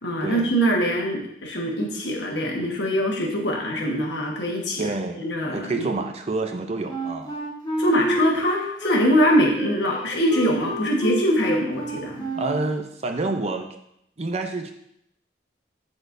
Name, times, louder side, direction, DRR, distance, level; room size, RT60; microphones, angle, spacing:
voice 1, 0.0-4.9 5.2-5.9 7.8-12.3, equal, 85° left, 0 dB, 1.3 m, -23 dB
voice 2, 4.8-5.3 5.5-7.4 12.3-13.7 14.2-14.7, right 2 dB, 35° right, 5 dB, 0.5 m, -28 dB
Wind instrument woodwind instrument, 6.9-12.8, right 1 dB, 25° left, 1.2 m, -29 dB
13.0 x 4.3 x 2.6 m, 0.75 s
head